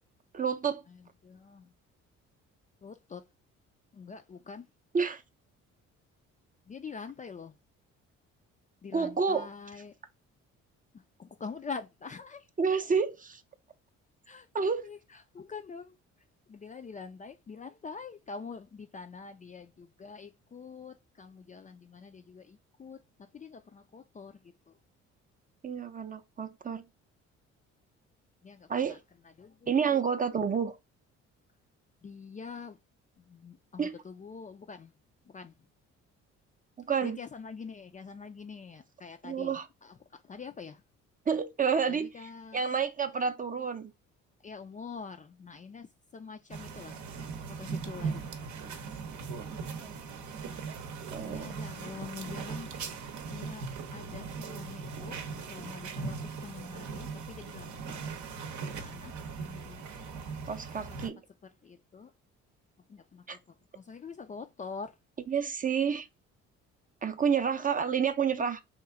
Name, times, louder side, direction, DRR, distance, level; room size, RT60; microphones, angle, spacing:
voice 1, 0.3-0.8 4.9-5.2 8.9-9.5 12.6-13.4 14.5-14.9 25.6-26.8 28.7-29.0 29.7-30.8 33.8-33.9 36.9-37.2 39.2-39.7 41.3-43.9 49.8-50.0 51.1-51.5 60.5-61.2 63.3-63.4 65.3-66.1 67.0-68.6, right 6 dB, 25° right, 0.5 m, -29 dB
voice 2, 0.9-1.7 2.8-3.3 3.9-4.7 6.7-7.6 8.8-10.0 10.9-12.5 14.3-14.5 14.8-16.0 16.5-24.8 28.4-29.0 29.2-30.0 32.0-32.8 33.2-34.9 35.2-35.5 37.0-40.8 41.9-42.6 44.4-47.0 47.5-48.3 51.2-52.7 53.2-55.2 55.5-58.0 58.6-59.9 60.8-61.1 61.4-62.1 62.9-65.0, left 5 dB, 25° left, 0.4 m, -45 dB
sound 1, 46.5-61.1, right 5 dB, 65° right, 0.7 m, -39 dB
3.0 x 2.4 x 3.5 m
supercardioid pair, 70°, 31 cm